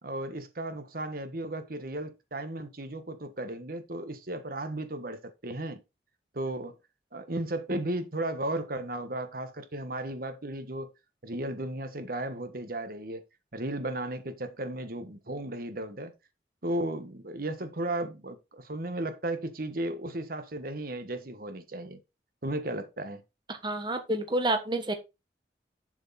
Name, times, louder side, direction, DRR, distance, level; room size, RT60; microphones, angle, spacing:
voice 1, 0.0-5.8 6.3-6.8 7.1-10.9 11.2-13.2 13.5-16.1 16.6-22.0 22.4-23.2, right 1 dB, 55° right, 1.4 m, -35 dB
voice 2, 23.6-24.9, right 2 dB, 25° right, 1.3 m, -28 dB
7.5 x 6.5 x 4.1 m
head